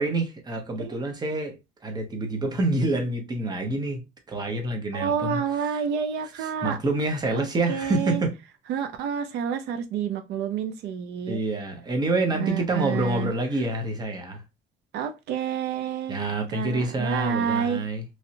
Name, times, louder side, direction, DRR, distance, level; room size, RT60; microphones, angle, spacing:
voice 1, 0.0-1.6 1.8-4.0 4.3-5.4 5.7-5.8 6.6-8.3 11.3-14.4 16.1-18.0, right 2 dB, 25° right, 0.9 m, -27 dB
voice 2, 4.9-6.8 7.3-8.2 8.7-11.4 12.3-13.3 14.9-16.2 16.5-17.8, right 8 dB, 80° right, 0.5 m, -29 dB
3.1 x 2.7 x 2.7 m
cardioid pair, 110°, 17 cm